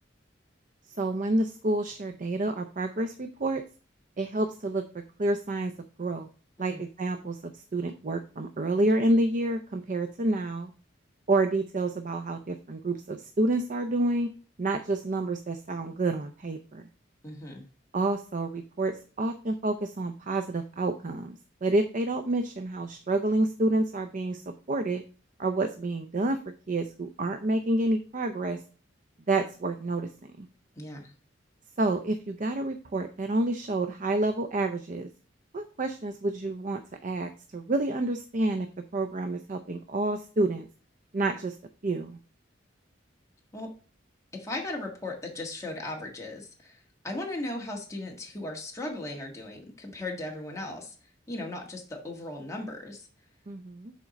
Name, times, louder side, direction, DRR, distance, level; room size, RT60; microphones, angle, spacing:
voice 1, 1.0-3.6 4.2-4.8 5.2-5.7 6.0-6.3 6.6-10.7 11.3-14.3 14.6-16.9 17.9-21.3 21.6-25.0 25.4-26.4 26.7-28.6 29.3-30.5 31.8-35.1 35.5-38.7 38.9-40.7 41.1-41.6 41.8-42.2 53.5-53.9, right 2 dB, 45° right, 7 dB, 0.6 m, -28 dB
voice 2, 17.2-17.6 30.7-31.1 43.5-43.7 44.3-50.9 51.3-53.1, left 2 dB, 15° left, -1 dB, 1.6 m, -37 dB
7.2 x 4.4 x 5.1 m, 0.38 s
head